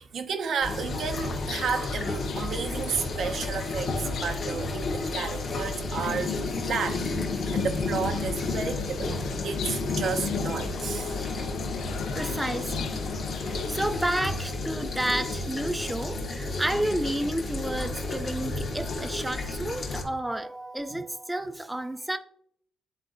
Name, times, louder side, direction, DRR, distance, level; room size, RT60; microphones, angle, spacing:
voice 1, 0.0-6.4 6.6-7.0 7.5-9.2 9.4-11.4 12.3-12.4 20.9-21.0, right 6 dB, 60° right, 0.7 m, -32 dB
sound 1, 0.6-20.0, left 3 dB, 50° left, 1.4 m, -31 dB
sound 2, 1.0-13.9, left 7 dB, 80° left, 0.4 m, -39 dB
voice 2, 12.2-13.1 13.3-22.2, right 1 dB, 10° right, 0.5 m, -31 dB
10.0 x 3.9 x 2.6 m
cardioid pair, 90°, 0 cm